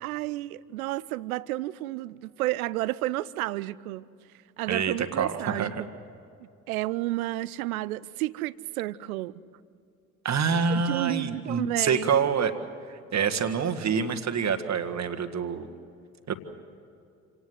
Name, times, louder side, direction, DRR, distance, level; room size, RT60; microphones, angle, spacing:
voice 1, 0.0-4.1 4.6-5.9 6.7-9.4 10.7-12.1, right 17 dB, 70° right, 0.6 m, -31 dB
voice 2, 4.7-5.8 10.2-12.5 12.9-15.7 16.3-16.4, right 6 dB, 40° right, 1.8 m, -26 dB
27.5 x 18.5 x 7.8 m
figure-of-eight pair, 50°, 44 cm